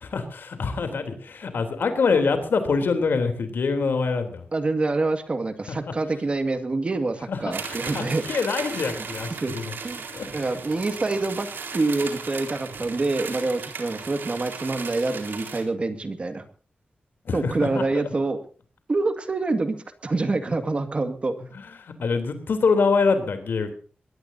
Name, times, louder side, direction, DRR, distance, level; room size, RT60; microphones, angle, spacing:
voice 1, 0.0-4.4 5.7-5.9 7.3-9.7 10.1-10.5 17.3-17.8 21.5-23.7, left 4 dB, 75° left, 8 dB, 3.4 m, -25 dB
voice 2, 4.5-8.2 9.4-9.5 9.8-10.0 10.3-16.4 17.3-18.4 18.9-19.8 20.0-21.3, right 3 dB, 35° right, 9 dB, 2.0 m, -26 dB
sound 1, 7.5-15.6, right 5 dB, 80° right, 4.2 m, -36 dB
23.0 x 20.0 x 2.8 m, 0.40 s
wide cardioid pair, 175°, 3 cm